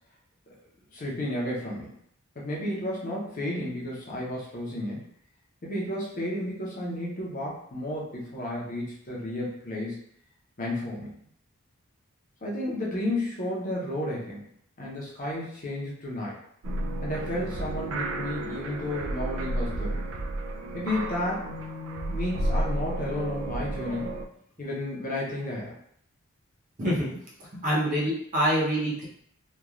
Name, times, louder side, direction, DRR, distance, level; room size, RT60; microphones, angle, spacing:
voice 1, 0.9-1.9 2.3-5.0 5.6-10.0 10.6-11.2 12.4-14.4 14.8-16.4 17.0-20.0 20.7-21.5 22.1-24.2 24.6-25.8, left 1 dB, 35° left, -4 dB, 0.7 m, -32 dB
sound 1, 16.6-24.2, right 1 dB, 70° right, 0.3 m, -32 dB
voice 2, 27.6-29.0, equal, 35° right, -5 dB, 0.7 m, -25 dB
3.0 x 2.3 x 2.4 m, 0.67 s
head